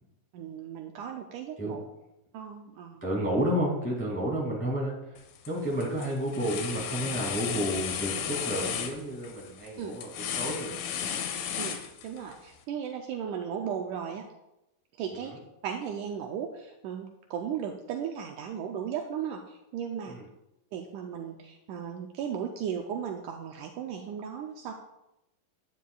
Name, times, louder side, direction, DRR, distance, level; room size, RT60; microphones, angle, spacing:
voice 1, 0.3-1.8 2.3-3.1 9.8-9.9 11.6-14.3 15.0-15.4 15.6-20.2 20.7-24.7, right 8 dB, 80° right, 3 dB, 1.9 m, -36 dB
voice 2, 3.0-10.8 15.2-15.3 20.1-20.2, equal, 5° left, -3 dB, 1.5 m, -31 dB
sound 1, 5.2-5.5 5.8-12.3, left 8 dB, 85° left, 2.6 m, -34 dB
11.5 x 8.9 x 2.3 m, 0.90 s
omnidirectional pair, 4.0 m